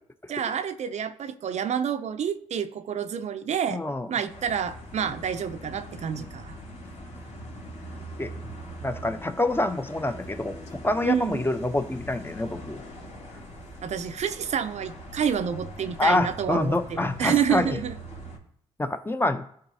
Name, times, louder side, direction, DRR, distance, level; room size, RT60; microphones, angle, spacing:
voice 1, 0.3-3.8 4.1-6.6 11.0-11.4 13.8-18.0, right 8 dB, 60° right, 10 dB, 0.5 m, -28 dB
voice 2, 3.7-4.1 6.2-6.3 8.2-8.3 8.8-12.8 16.0-17.8 18.8-19.5, left 2 dB, 15° left, 8 dB, 0.8 m, -26 dB
sound 1, 4.3-18.4, equal, 60° left, 2.1 m, -42 dB
11.5 x 3.9 x 2.8 m, 0.64 s
supercardioid pair, 50°, 13 cm